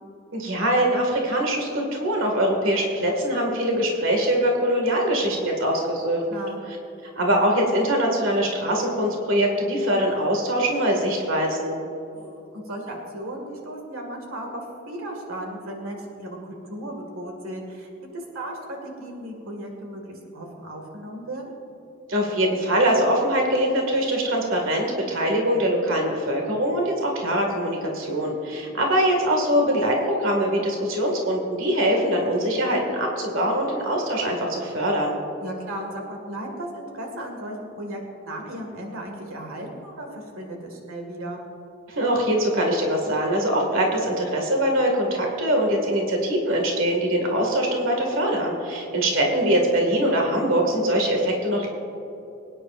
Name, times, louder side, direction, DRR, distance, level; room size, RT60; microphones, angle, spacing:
voice 1, 0.3-6.2 7.1-11.8 22.1-35.2 41.9-51.7, equal, 70° right, 1 dB, 2.0 m, -23 dB
voice 2, 6.3-6.6 12.1-21.5 28.5-28.8 35.4-41.4 48.7-48.8, right 1 dB, 90° right, 1 dB, 2.0 m, -36 dB
23.5 x 9.9 x 2.5 m, 2.9 s
head